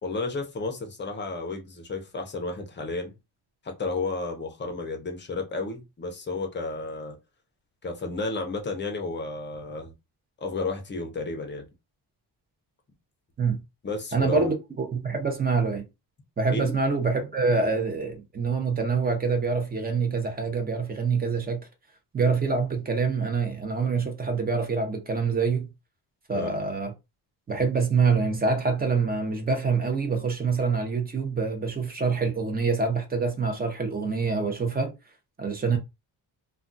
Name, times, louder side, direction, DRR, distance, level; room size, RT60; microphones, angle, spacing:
voice 1, 0.0-3.1 3.6-7.2 7.8-9.9 10.4-11.6 13.8-14.5 16.5-16.7 26.3-26.5, left 3 dB, 25° left, 0.6 m, -32 dB
voice 2, 14.1-15.8 16.4-21.7 22.1-25.7 26.3-26.9 27.5-34.9 35.4-35.8, right 4 dB, 20° right, 0.6 m, -26 dB
2.3 x 2.3 x 3.8 m
cardioid pair, 170°, 43 cm